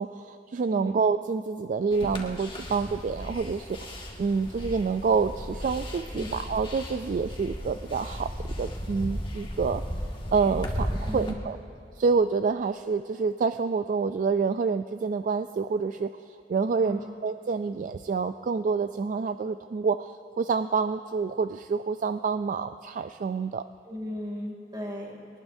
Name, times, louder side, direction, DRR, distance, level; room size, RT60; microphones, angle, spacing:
voice 1, 0.0-8.3 8.6-9.8 10.3-11.6 12.0-23.6, right 5 dB, 45° right, 10 dB, 0.3 m, -27 dB
sound 1, 1.9-11.3, equal, 30° left, 1.6 m, -35 dB
voice 2, 11.0-11.5 16.8-17.2 23.9-25.2, left 1 dB, 25° right, -1 dB, 2.7 m, -36 dB
21.5 x 19.0 x 2.7 m, 2.7 s
head